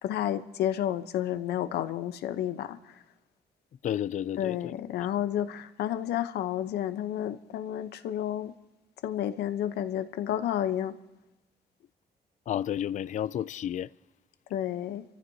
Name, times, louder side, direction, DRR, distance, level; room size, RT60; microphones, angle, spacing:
voice 1, 0.0-3.0 4.4-8.5 9.0-10.9 14.5-15.0, left 11 dB, 80° left, 0.8 m, -31 dB
voice 2, 3.8-4.7 12.5-13.9, left 10 dB, 50° left, 0.4 m, -31 dB
29.5 x 14.5 x 2.8 m
cardioid pair, 90°, 17 cm